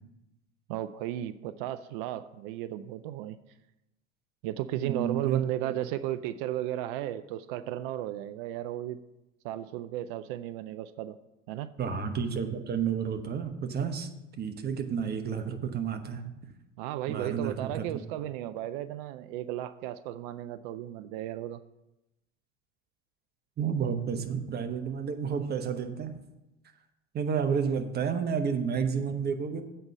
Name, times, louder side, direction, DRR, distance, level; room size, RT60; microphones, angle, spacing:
voice 1, 0.7-3.4 4.4-9.0 9.4-11.2 11.5-11.7 16.8-21.6, right 13 dB, 45° right, 12 dB, 0.4 m, -34 dB
voice 2, 4.8-5.4 11.8-14.1 14.4-16.3 17.1-18.0 23.6-26.1 27.1-29.6, right 6 dB, 25° right, 6 dB, 1.1 m, -31 dB
7.8 x 5.5 x 7.5 m, 0.94 s
figure-of-eight pair, 75°, 39 cm